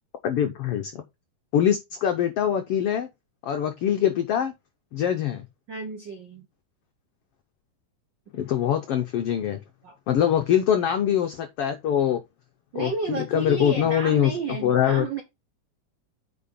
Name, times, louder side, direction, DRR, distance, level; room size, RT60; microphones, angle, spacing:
voice 1, 0.2-1.0 1.5-3.1 3.4-4.5 4.9-5.5 8.3-9.6 10.1-12.2 12.7-14.3 14.6-15.0, left 10 dB, 85° left, 1.3 m, -23 dB
voice 2, 5.7-6.5 9.8-10.0 12.7-15.2, right 5 dB, 80° right, 1.0 m, -32 dB
8.9 x 4.7 x 4.2 m
omnidirectional pair, 3.8 m